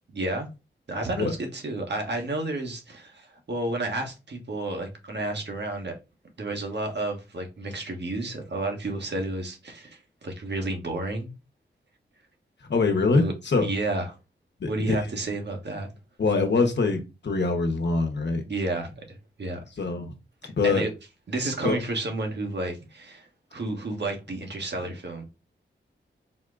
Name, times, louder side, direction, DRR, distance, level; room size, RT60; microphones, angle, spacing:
voice 1, 0.1-0.5 0.9-5.9 6.4-11.3 13.1-13.3 13.6-14.2 14.7-15.9 18.5-19.6 20.4-20.9 21.3-25.3, right 2 dB, 60° right, 1.3 m, -31 dB
voice 2, 12.7-13.7 14.6-15.0 16.2-18.4 19.8-20.1 20.6-20.8 21.6-21.8 24.9-25.0, left 3 dB, 60° left, 1.0 m, -24 dB
4.2 x 2.2 x 3.8 m
cardioid pair, 50°, 20 cm